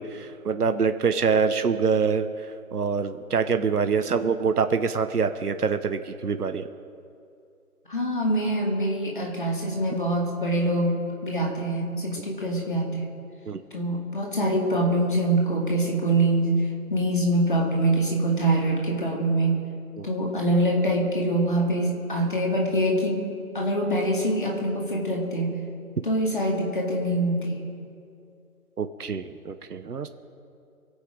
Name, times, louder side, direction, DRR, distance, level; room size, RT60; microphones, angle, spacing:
voice 1, 0.0-2.5 2.7-6.7 13.4-13.6 20.0-20.1 28.8-30.1, right 5 dB, 85° right, 9 dB, 1.0 m, -25 dB
voice 2, 7.9-11.0 11.2-13.0 13.7-19.6 20.0-23.2 23.5-25.5 26.0-27.6, right 1 dB, 35° left, 0 dB, 2.2 m, -24 dB
24.0 x 8.2 x 5.0 m, 2.5 s
figure-of-eight pair, 180°, 45 cm